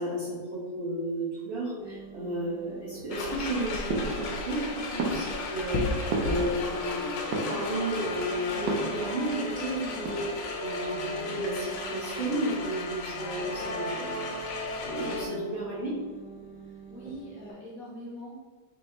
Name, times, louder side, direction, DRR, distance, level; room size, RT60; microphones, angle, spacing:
voice 1, 0.0-5.9 6.2-7.1 7.5-14.3 14.8-16.0, right 1 dB, 40° right, -10 dB, 1.1 m, -33 dB
sound 1, 1.8-17.5, equal, 35° left, 1.0 m, -46 dB
sound 2, 3.1-15.3, left 2 dB, 70° left, 1.2 m, -34 dB
sound 3, 3.9-4.6 5.0-6.9 7.2-8.0 8.6-9.6 9.9-10.5, right 3 dB, 75° right, 1.4 m, -33 dB
voice 2, 16.6-18.4, equal, 50° left, -5 dB, 1.4 m, -43 dB
4.2 x 3.4 x 3.2 m, 1.5 s
omnidirectional pair, 2.1 m